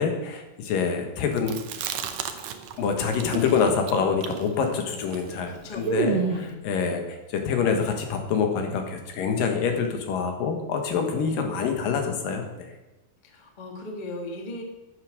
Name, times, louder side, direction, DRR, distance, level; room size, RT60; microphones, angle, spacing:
voice 1, 0.0-1.6 2.8-12.7, left 6 dB, 75° left, 4 dB, 3.0 m, -26 dB
Chewing mastication, 1.4-2.8 3.1-6.5, right 6 dB, 80° right, 1.5 m, -30 dB
voice 2, 5.5-7.0 13.2-14.6, left 1 dB, 40° left, 2 dB, 0.6 m, -38 dB
9.9 x 8.3 x 6.5 m, 1.0 s
omnidirectional pair, 4.1 m